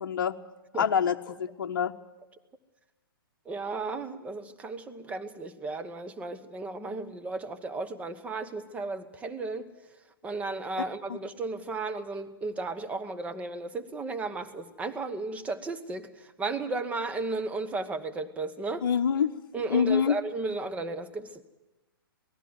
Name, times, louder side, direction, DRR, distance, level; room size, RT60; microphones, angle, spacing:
voice 1, 0.0-0.4 0.8-1.9 11.1-11.2 18.8-19.3 19.7-20.2, left 7 dB, 60° left, 5 dB, 0.8 m, -26 dB
voice 2, 3.5-9.7 10.2-18.8 19.5-21.4, right 3 dB, 10° right, 9 dB, 1.0 m, -34 dB
19.0 x 14.5 x 9.4 m, 1.1 s
figure-of-eight pair, 120°, 12 cm